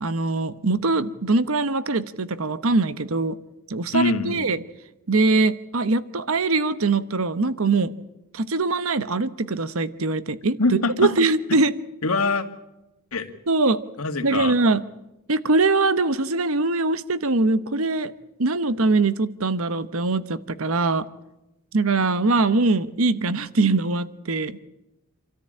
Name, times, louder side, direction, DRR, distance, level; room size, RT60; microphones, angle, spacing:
voice 1, 0.0-3.4 3.7-4.6 5.1-7.9 8.3-10.6 11.0-11.7 13.5-13.8 14.2-14.8 15.3-18.1 18.4-21.1 21.7-24.6, right 3 dB, 70° right, 14 dB, 1.0 m, -22 dB
voice 2, 3.9-4.5 10.6-11.1 12.0-12.4 13.1-13.3 14.0-14.6, left 3 dB, 85° left, 7 dB, 2.0 m, -23 dB
28.0 x 13.5 x 8.7 m, 0.94 s
head